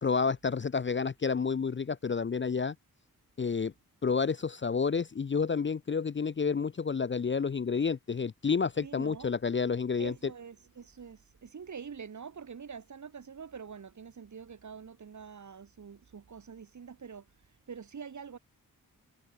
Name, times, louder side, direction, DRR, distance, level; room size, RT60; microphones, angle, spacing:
voice 1, 0.0-2.7 3.4-3.7 4.0-10.1, left 5 dB, 35° left, 0.6 m, -30 dB
voice 2, 8.8-9.3 10.0-18.4, right 6 dB, 50° right, 2.3 m, -45 dB
wide cardioid pair, 165°, 36 cm